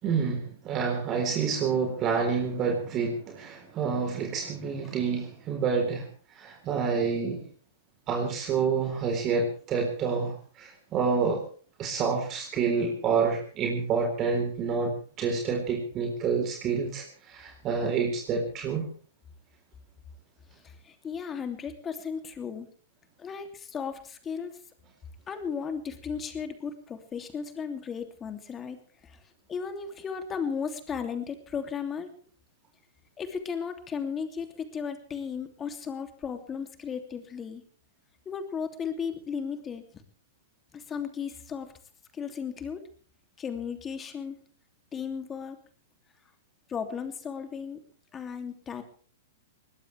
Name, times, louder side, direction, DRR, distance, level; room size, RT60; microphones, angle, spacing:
voice 1, 0.0-6.0 6.4-7.4 8.1-11.4 11.8-18.9, right 5 dB, 30° right, 2 dB, 4.0 m, -28 dB
voice 2, 20.6-22.7 23.2-24.5 25.3-28.8 29.0-29.2 29.5-32.1 33.2-37.6 38.2-39.8 40.7-41.7 42.1-42.9 43.4-44.4 44.9-45.6 46.7-47.8 48.1-48.8, left 6 dB, 20° left, 7 dB, 2.8 m, -35 dB
21.5 x 19.5 x 3.4 m, 0.42 s
figure-of-eight pair, 105°, 0 cm